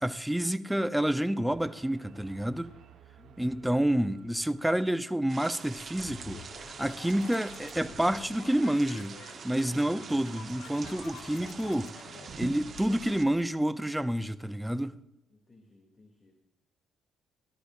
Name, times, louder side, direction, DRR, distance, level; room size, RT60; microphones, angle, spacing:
voice 1, 0.0-2.7 3.4-9.2 9.4-11.9 12.4-15.0, right 1 dB, 5° right, 0.7 m, -29 dB
sound 1, 1.5-5.3, right 9 dB, 70° right, 1.2 m, -56 dB
voice 2, 3.1-3.7 15.3-16.3, left 2 dB, 30° left, 2.7 m, -58 dB
sound 2, 5.3-13.2, right 5 dB, 50° right, 1.1 m, -44 dB
sound 3, 5.9-13.4, left 7 dB, 80° left, 1.3 m, -49 dB
18.5 x 12.0 x 2.6 m
cardioid pair, 90°, 0 cm